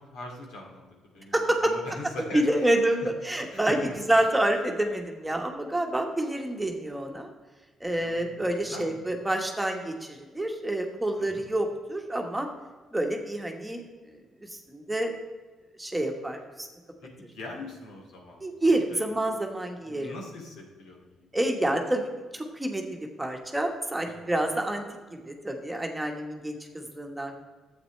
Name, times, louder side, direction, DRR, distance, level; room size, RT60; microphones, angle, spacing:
voice 1, 0.1-0.9 1.1-3.1 3.3-3.9 8.0-9.0 11.2-11.4 17.0-19.1 19.8-21.3 24.1-24.2, left 2 dB, 85° left, 0 dB, 2.4 m, -42 dB
voice 2, 1.3-1.7 2.3-7.3 7.8-12.5 12.9-15.1 15.8-16.7 18.4-20.1 21.3-24.8 25.1-27.4, right 1 dB, 10° right, 3 dB, 1.3 m, -28 dB
11.5 x 8.1 x 3.2 m, 1.3 s
cardioid pair, 90°, 0 cm